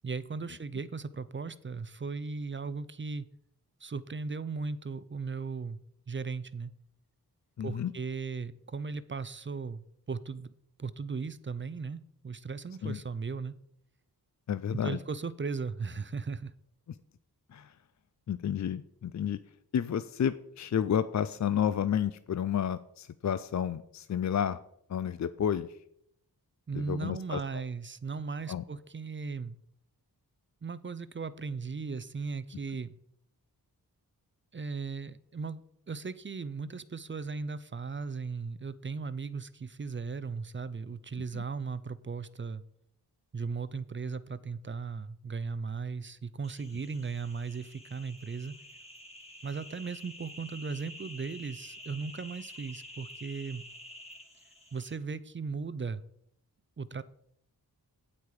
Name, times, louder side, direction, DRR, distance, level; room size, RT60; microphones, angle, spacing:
voice 1, 0.0-3.3 3.8-5.8 6.1-6.7 7.6-10.5 10.8-13.6 14.7-16.5 26.7-29.6 30.6-32.9 34.5-35.6 35.9-42.6 43.3-48.5 49.4-53.6 54.7-56.0 56.8-57.0, right 4 dB, 30° right, 16 dB, 0.5 m, -37 dB
voice 2, 7.6-7.9 12.8-13.0 14.5-15.0 16.9-17.0 17.5-17.7 18.3-19.4 19.7-24.6 24.9-25.7 26.7-27.6 28.5-28.6 41.3-41.4, left 9 dB, 50° left, 13 dB, 0.4 m, -31 dB
sound 1, 46.4-55.0, left 1 dB, 15° left, 2.0 m, -49 dB
8.7 x 8.3 x 4.8 m, 0.72 s
wide cardioid pair, 85°, 39 cm